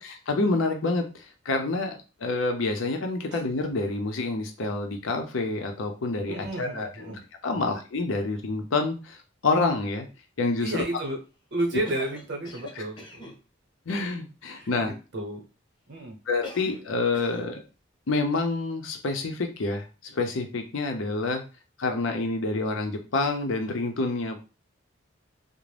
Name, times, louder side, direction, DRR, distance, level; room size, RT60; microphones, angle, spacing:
voice 1, 0.0-7.1 7.4-10.1 10.4-10.8 12.8-12.9 13.9-14.9 16.3-17.6 18.1-21.4 21.8-24.4, left 3 dB, 85° left, 5 dB, 0.6 m, -28 dB
voice 2, 6.3-7.2 7.6-7.7 10.6-11.2 11.5-13.3 14.5-15.4 15.9-16.2, right 1 dB, 60° right, 2 dB, 0.8 m, -32 dB
Cough, 11.8-13.4 16.4-16.9 17.1-17.5, left 2 dB, 25° left, 0.5 m, -43 dB
2.5 x 2.1 x 3.2 m, 0.32 s
head